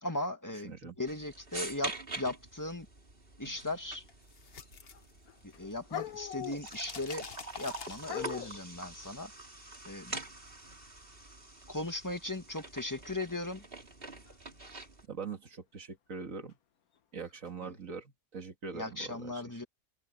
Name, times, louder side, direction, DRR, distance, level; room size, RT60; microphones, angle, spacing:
voice 1, 0.0-2.9 3.4-4.0 5.4-7.2 7.6-9.3 9.9-10.2 11.7-13.6 17.6-17.7 18.7-19.6, left 2 dB, 15° left, 2.0 m, -37 dB
voice 2, 0.6-1.0 15.0-16.6 17.1-19.6, right 5 dB, 65° right, 2.2 m, -43 dB
sound 1, 1.1-15.1, right 3 dB, 40° right, 3.2 m, -45 dB
sound 2, 4.1-5.8 6.0-8.5, left 6 dB, 45° left, 1.2 m, -47 dB
sound 3, 4.6-5.0 5.3-7.0 8.0-8.6 12.8-13.1 14.3-14.4 16.5-16.6 17.5-17.7, left 12 dB, 85° left, 1.5 m, -42 dB
omnidirectional pair, 1.5 m